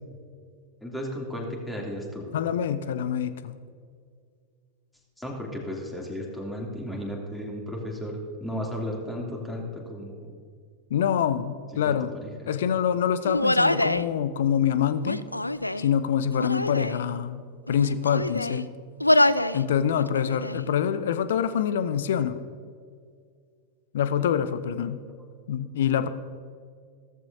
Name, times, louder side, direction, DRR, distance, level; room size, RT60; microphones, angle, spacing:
voice 1, 0.8-2.3 5.2-10.3 11.8-12.5, equal, 5° left, -2 dB, 3.0 m, -34 dB
voice 2, 2.3-3.6 10.9-12.1 12.5-15.2 15.8-18.7 19.5-22.4 23.9-25.0 25.5-26.1, left 8 dB, 60° left, 13 dB, 0.7 m, -25 dB
Human voice, 13.2-14.1 15.0-15.9 16.3-17.0 17.7-18.6 19.0-19.6 20.0-20.6, left 1 dB, 85° left, 0.3 m, -25 dB
16.0 x 14.0 x 2.8 m, 2.1 s
figure-of-eight pair, 90°, 0 cm